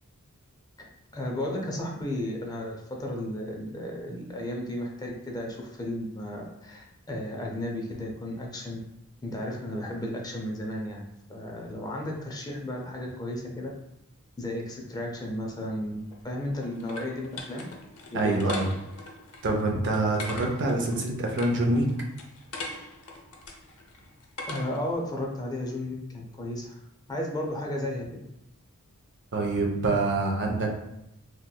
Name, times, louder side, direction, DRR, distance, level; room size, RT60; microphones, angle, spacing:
voice 1, 0.8-8.8 9.2-13.7 14.4-17.6 18.1-18.3 24.5-26.8 27.1-28.3, left 1 dB, 20° left, 0 dB, 0.4 m, -34 dB
sound 1, 15.9-24.9, left 2 dB, 90° left, 0.6 m, -42 dB
voice 2, 18.1-18.7 19.4-21.9 29.3-30.7, right 2 dB, 55° right, 1 dB, 0.5 m, -25 dB
3.1 x 2.9 x 2.2 m, 0.83 s
head